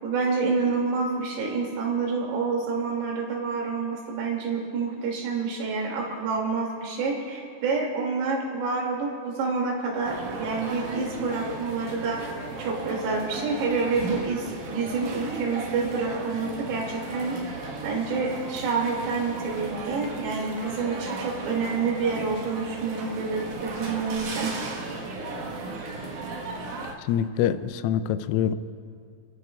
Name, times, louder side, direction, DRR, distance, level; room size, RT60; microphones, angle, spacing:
voice 1, 0.0-12.2 12.6-24.5, right 4 dB, 85° right, -1 dB, 5.3 m, -28 dB
sound 1, 10.0-26.9, right 3 dB, 70° right, 1.9 m, -35 dB
voice 2, 27.0-28.6, left 9 dB, 85° left, 12 dB, 3.2 m, -25 dB
30.0 x 15.0 x 2.4 m, 2.4 s
omnidirectional pair, 5.9 m